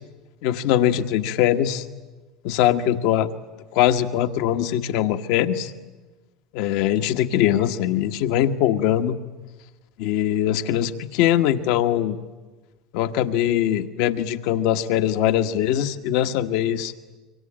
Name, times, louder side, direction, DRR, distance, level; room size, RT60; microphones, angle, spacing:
voice 1, 0.4-1.8 2.4-3.3 3.7-5.7 6.5-9.2 10.0-12.2 12.9-16.9, left 11 dB, 65° left, 9 dB, 1.3 m, -21 dB
26.0 x 24.0 x 8.9 m, 1.2 s
hypercardioid pair, 85°, 0 cm